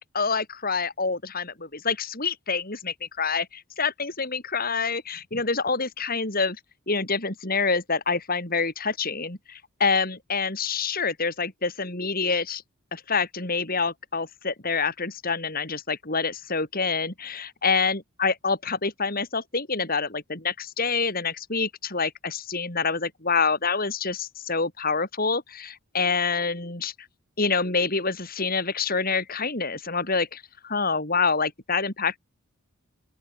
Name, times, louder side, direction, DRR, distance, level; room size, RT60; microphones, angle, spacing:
voice 1, 0.0-6.6 6.9-12.6 12.9-26.9 27.4-32.2, left 4 dB, 40° left, 4.1 m, -27 dB
open air
head